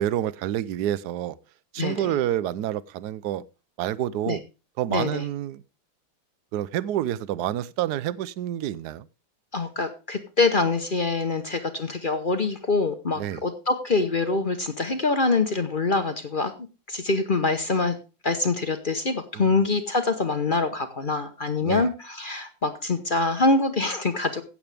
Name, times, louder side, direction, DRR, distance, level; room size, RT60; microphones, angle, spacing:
voice 1, 0.0-1.4 1.7-3.4 3.8-4.4 4.8-5.6 6.5-9.1 13.1-13.4 19.3-19.6 21.6-21.9, right 12 dB, 70° right, 1.1 m, -28 dB
voice 2, 1.8-2.1 4.3-4.4 4.9-5.2 9.5-16.5 16.9-18.0 18.2-24.4, left 3 dB, 35° left, 0.8 m, -25 dB
15.5 x 8.0 x 3.4 m
omnidirectional pair, 2.1 m